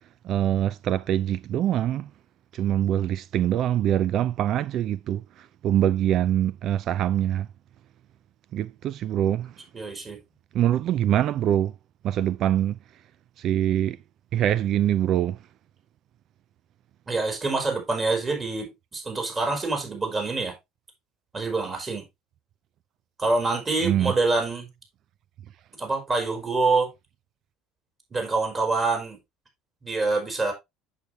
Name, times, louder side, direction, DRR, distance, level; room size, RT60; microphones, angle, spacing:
voice 1, 0.2-2.1 2.5-5.2 5.6-7.5 8.5-9.5 10.5-11.7 12.0-12.8 13.4-14.0 14.3-15.4 23.8-24.1, right 11 dB, 55° right, 0.4 m, -24 dB
voice 2, 9.7-10.2 17.1-20.5 21.3-22.1 23.2-24.7 25.8-26.9 28.1-29.2 29.8-30.5, right 3 dB, 30° right, 4.8 m, -26 dB
8.3 x 6.6 x 3.3 m
supercardioid pair, 85°, 0 cm